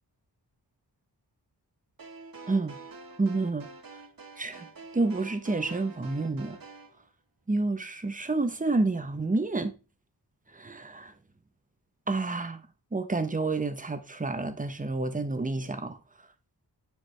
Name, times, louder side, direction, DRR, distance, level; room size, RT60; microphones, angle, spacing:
sound 1, 2.0-6.9, right 3 dB, 55° right, 1.5 m, -47 dB
voice 1, 2.5-2.8 3.2-3.7 4.4-4.7 4.9-6.6 7.5-9.7 10.5-11.1 12.1-12.6 12.9-16.0, right 3 dB, 20° right, 1.0 m, -29 dB
9.7 x 4.9 x 3.3 m
wide cardioid pair, 135°, 41 cm